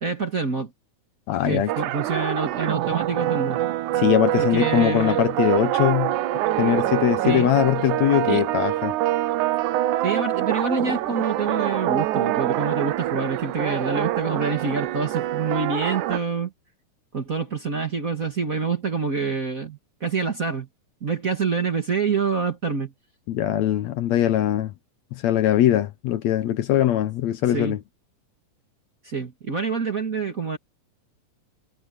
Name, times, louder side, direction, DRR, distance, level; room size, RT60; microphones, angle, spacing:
voice 1, 0.0-0.7 1.4-3.6 4.4-5.2 7.2-7.6 8.2-8.4 10.0-16.5 17.1-20.7 21.0-22.9 27.5-27.8 29.0-30.6, right 5 dB, 35° right, 1.8 m, -26 dB
voice 2, 1.3-1.7 4.0-6.1 6.6-8.9 23.3-24.7 25.1-27.8, left 12 dB, 70° left, 1.9 m, -21 dB
sound 1, 1.7-16.2, right 14 dB, 80° right, 2.2 m, -25 dB
omnidirectional pair, 3.6 m